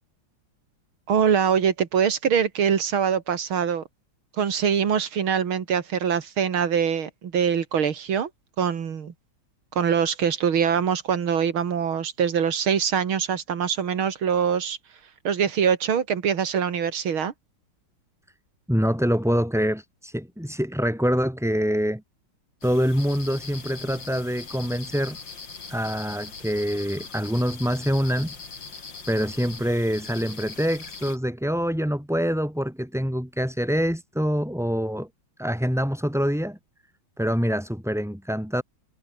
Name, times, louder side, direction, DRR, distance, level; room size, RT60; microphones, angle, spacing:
voice 1, 1.1-3.8 4.4-8.3 8.6-9.1 9.8-14.8 15.2-17.3, right 7 dB, 90° right, 2.8 m, -23 dB
voice 2, 18.7-22.0 22.6-25.2 25.7-28.3 29.1-35.1 35.4-36.6 37.2-38.6, equal, ahead, 3.3 m, -25 dB
sound 1, 22.6-31.2, left 5 dB, 60° left, 3.9 m, -41 dB
omnidirectional pair, 2.2 m